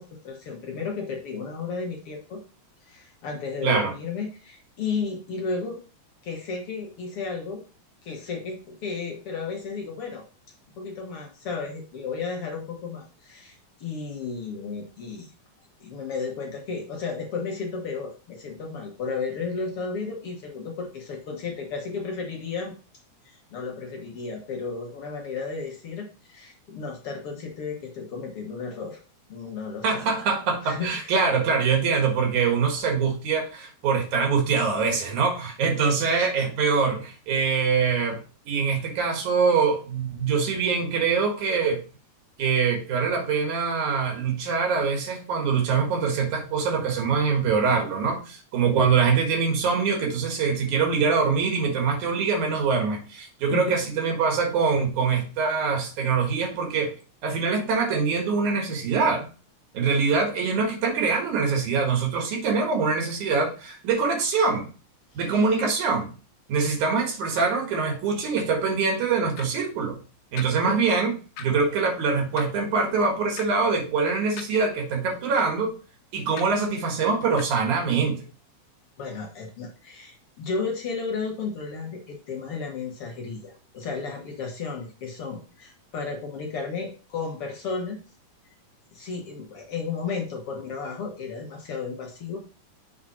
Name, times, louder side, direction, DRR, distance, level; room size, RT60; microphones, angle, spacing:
voice 1, 0.0-2.4 2.9-5.8 6.2-7.6 8.0-10.2 10.8-15.3 15.8-22.7 23.3-29.0 29.3-30.0 30.6-31.1 53.5-53.8 65.3-65.4 70.7-70.8 79.0-88.0 88.9-92.4, left 4 dB, 55° left, 0 dB, 1.9 m, -33 dB
voice 2, 3.6-3.9 29.8-38.2 38.5-41.8 42.4-56.9 57.2-59.3 59.7-64.7 65.1-66.1 66.5-70.0 70.3-71.1 71.4-75.7 76.1-78.2, right 5 dB, 80° right, 2 dB, 3.1 m, -24 dB
sound 1, 67.4-67.5 68.4-68.5 69.4-69.5 70.4-70.5 71.4-71.5 72.4-72.5 73.4-73.5 74.4-74.5 75.4-75.5 76.4-76.5 77.4-77.5, left 7 dB, 85° left, 2.3 m, -38 dB
7.6 x 3.9 x 4.3 m, 0.36 s
omnidirectional pair, 3.4 m